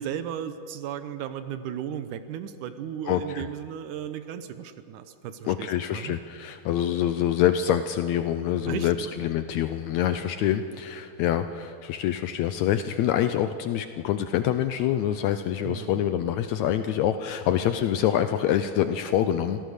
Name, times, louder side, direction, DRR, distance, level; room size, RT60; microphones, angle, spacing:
voice 1, 0.0-6.2 8.7-9.1 15.6-16.0, right 9 dB, 75° right, 10 dB, 2.3 m, -35 dB
voice 2, 3.1-3.4 5.4-19.6, left 10 dB, 75° left, 10 dB, 1.7 m, -26 dB
25.5 x 16.5 x 6.5 m, 2.6 s
omnidirectional pair, 3.8 m